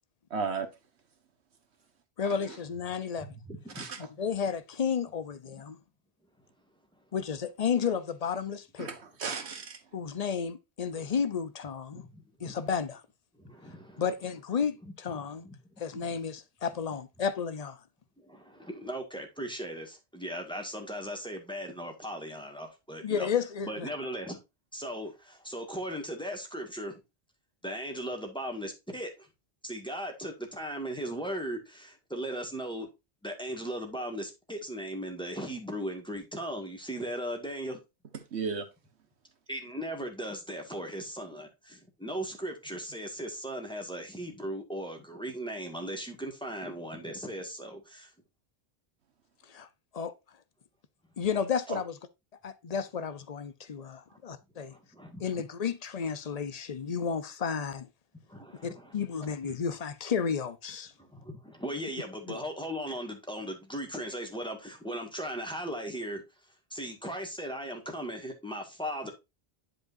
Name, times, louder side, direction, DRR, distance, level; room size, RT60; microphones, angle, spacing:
voice 1, 0.3-0.7 2.5-2.6 3.7-4.0 8.8-9.8 38.3-38.7 51.7-51.8, right 5 dB, 85° right, 1.5 m, -34 dB
voice 2, 2.2-3.3 4.2-5.8 7.1-8.9 9.9-12.0 12.4-13.0 14.0-15.4 15.8-17.8 23.0-23.9 49.5-49.7 49.9-50.1 51.2-52.0 52.4-54.7 55.2-57.9 58.6-60.9 62.3-62.4, left 6 dB, 40° left, 0.7 m, -32 dB
voice 3, 3.2-3.8 5.5-5.6 10.0-10.1 11.0-11.1 11.9-12.6 13.4-14.0 14.8-15.6 15.9-16.2 18.2-23.3 23.6-24.4 24.7-27.0 27.6-29.1 29.6-32.9 33.2-37.8 39.5-48.1 54.1-54.2 54.7-55.4 58.3-58.9 59.2-59.3 61.0-66.2 66.7-69.1, equal, 5° left, 1.7 m, -38 dB
11.0 x 5.0 x 2.6 m
omnidirectional pair, 1.1 m